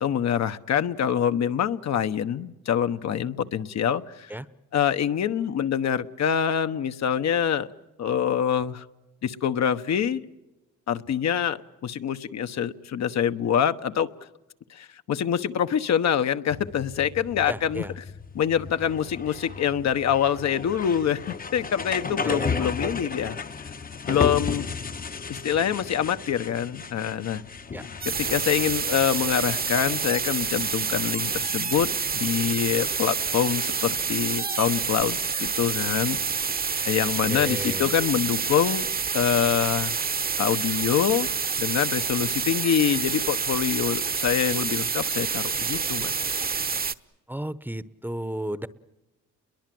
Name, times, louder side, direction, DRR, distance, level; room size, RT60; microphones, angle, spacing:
voice 1, 0.0-4.3 4.7-7.7 8.0-8.9 9.2-10.2 10.9-14.1 14.7-17.8 18.3-23.7 24.0-24.7 25.3-27.4 28.0-36.5 36.8-38.9 39.1-40.0 40.4-41.3 41.6-46.2, left 9 dB, 60° left, 9 dB, 1.2 m, -25 dB
sound 1, 16.5-34.5, left 5 dB, 30° left, 0.9 m, -35 dB
voice 2, 17.5-17.9 22.2-23.1 27.7-27.9 37.3-38.0 47.3-48.7, right 1 dB, 5° right, 16 dB, 1.0 m, -34 dB
sound 2, 28.0-46.9, right 5 dB, 30° right, 1.0 m, -28 dB
29.0 x 22.5 x 7.8 m, 0.99 s
cardioid pair, 90°, 30 cm